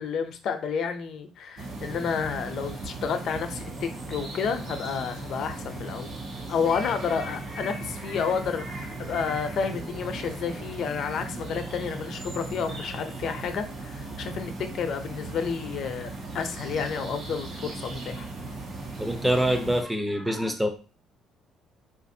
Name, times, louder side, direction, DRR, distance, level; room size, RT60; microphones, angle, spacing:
voice 1, 0.0-6.1 6.5-18.2, left 6 dB, 60° left, 7 dB, 0.6 m, -30 dB
sound 1, 1.6-19.8, right 2 dB, 50° right, 1.1 m, -37 dB
voice 2, 19.0-20.7, equal, 5° right, 6 dB, 0.6 m, -25 dB
3.8 x 2.5 x 2.7 m, 0.35 s
cardioid pair, 105°, 0 cm